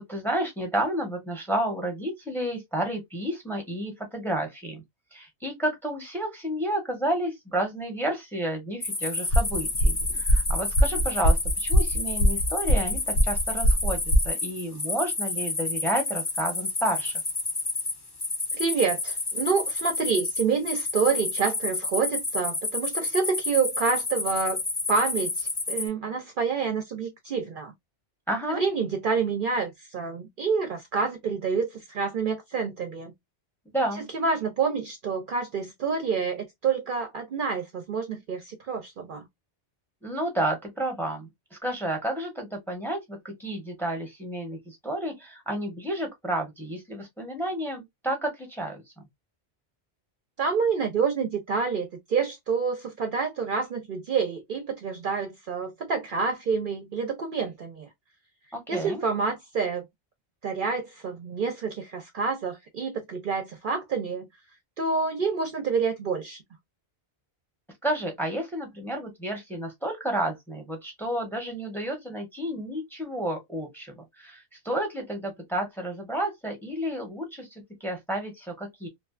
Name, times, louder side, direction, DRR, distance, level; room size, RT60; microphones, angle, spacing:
voice 1, 0.0-4.8 5.1-17.2 28.3-28.6 33.7-34.1 40.0-48.8 58.5-59.0 67.8-78.9, right 1 dB, ahead, 0.8 m, -31 dB
sound 1, 8.8-25.9, left 3 dB, 25° left, 0.6 m, -30 dB
sound 2, 9.3-14.3, equal, 65° left, 0.8 m, -22 dB
voice 2, 18.5-24.6 24.9-27.7 28.5-33.1 34.1-39.2 50.4-57.9 58.7-59.8 60.4-64.3 64.8-66.4, right 5 dB, 55° right, 0.7 m, -28 dB
2.6 x 2.3 x 2.3 m
omnidirectional pair, 1.1 m